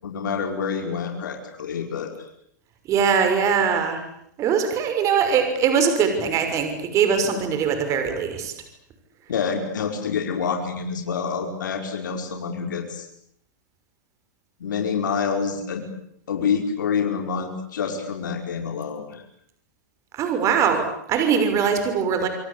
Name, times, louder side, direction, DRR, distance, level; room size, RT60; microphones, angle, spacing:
voice 1, 0.0-2.1 9.3-13.1 14.6-15.8 16.3-19.2, left 6 dB, 90° left, 3 dB, 5.2 m, -27 dB
voice 2, 2.9-4.0 4.4-8.5 20.1-22.3, right 6 dB, 30° right, 7 dB, 6.1 m, -21 dB
27.0 x 25.0 x 8.6 m, 0.71 s
hypercardioid pair, 135°, 10 cm